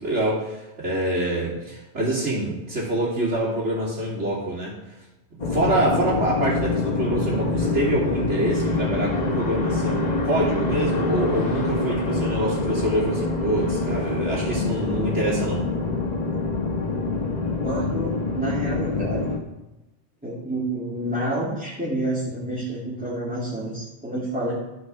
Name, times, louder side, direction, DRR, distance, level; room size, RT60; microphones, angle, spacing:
voice 1, 0.0-4.7 5.5-15.6, right 1 dB, 80° right, -8 dB, 3.0 m, -25 dB
sound 1, 5.4-19.4, left 3 dB, 35° left, 1.3 m, -25 dB
voice 2, 17.6-19.4 20.2-24.5, right 1 dB, 5° right, -8 dB, 2.5 m, -29 dB
13.0 x 5.2 x 6.2 m, 1.0 s
omnidirectional pair, 1.2 m